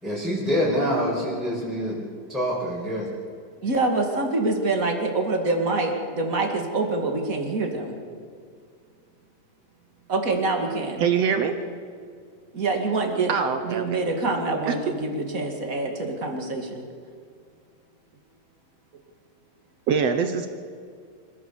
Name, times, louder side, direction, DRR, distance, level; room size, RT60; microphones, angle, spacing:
voice 1, 0.0-2.0 2.3-3.1, equal, ahead, -7 dB, 4.7 m, -25 dB
voice 2, 3.6-8.0 10.1-11.0 12.5-13.3 13.7-16.8, right 3 dB, 30° right, 3 dB, 2.2 m, -25 dB
voice 3, 11.0-11.6 13.3-14.3 14.7-14.8 19.9-20.5, right 6 dB, 65° right, 8 dB, 1.7 m, -24 dB
26.5 x 14.5 x 6.9 m, 2.1 s
omnidirectional pair, 3.7 m